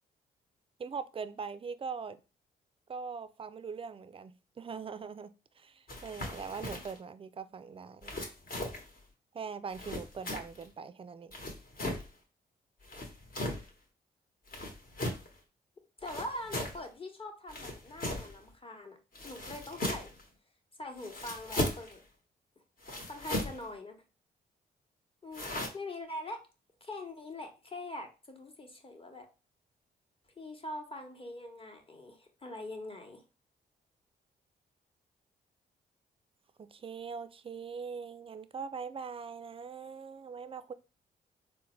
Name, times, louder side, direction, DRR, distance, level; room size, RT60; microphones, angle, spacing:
voice 1, 0.8-2.2 2.9-5.3 5.6-8.1 9.3-11.3 36.6-40.7, right 5 dB, 30° right, 0.4 m, -41 dB
sound 1, 5.9-7.0 8.0-8.9 9.7-10.7 11.3-12.1 12.8-13.7 14.5-15.3 16.0-16.8 17.5-18.4 19.1-20.2 21.0-21.9 22.8-23.6 25.3-25.7, left 1 dB, 45° left, 1.1 m, -37 dB
voice 2, 16.0-19.0 19.2-20.1 20.8-22.0 23.0-24.0 25.2-25.4 25.7-26.4 26.8-29.3 30.4-33.2, left 1 dB, 25° left, 1.0 m, -43 dB
3.6 x 2.1 x 3.0 m
hypercardioid pair, 45°, 20 cm